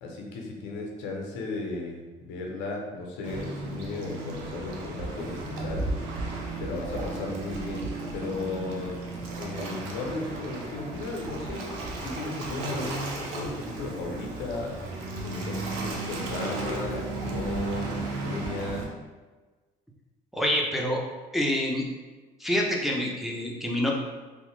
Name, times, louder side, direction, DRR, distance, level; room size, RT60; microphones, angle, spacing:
voice 1, 0.0-5.9 6.6-11.7 12.0-14.7 15.2-18.9, left 3 dB, 90° left, 0 dB, 0.5 m, -35 dB
Waves surf, 3.2-18.8, right 2 dB, 85° right, 0.5 m, -34 dB
voice 2, 20.3-21.0 21.3-21.8 22.4-23.9, left 1 dB, ahead, -2 dB, 0.5 m, -26 dB
2.9 x 2.0 x 3.1 m, 1.3 s
supercardioid pair, 70°, 19 cm